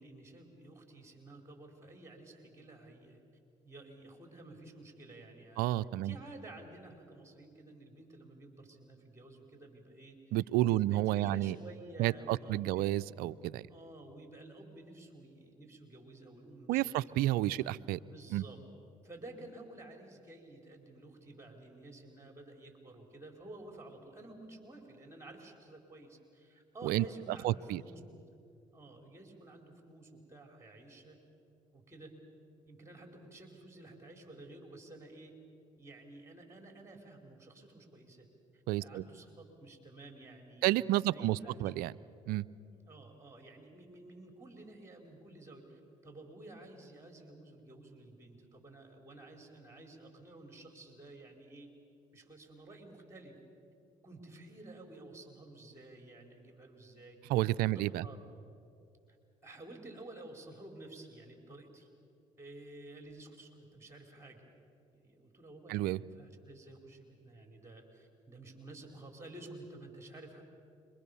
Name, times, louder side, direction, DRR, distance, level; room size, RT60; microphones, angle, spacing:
voice 1, 0.0-3.2 3.6-5.7 6.0-10.2 10.6-12.9 13.7-17.1 17.6-17.7 18.0-18.6 19.0-28.2 28.7-31.2 31.7-32.2 32.7-35.4 35.8-38.3 38.5-41.7 42.7-51.7 52.1-53.4 54.0-57.2 57.7-58.2 59.4-61.9 62.4-64.4 64.9-70.4, right 2 dB, 20° right, 3 dB, 4.9 m, -52 dB
voice 2, 5.6-6.2 10.3-11.6 12.0-13.6 16.7-18.0 18.3-18.4 26.8-27.0 27.4-27.8 38.7-39.0 40.6-41.9 42.3-42.5 57.3-58.0 65.7-66.0, right 15 dB, 75° right, 17 dB, 0.5 m, -30 dB
26.5 x 23.0 x 7.0 m, 2.5 s
hypercardioid pair, 60°, 16 cm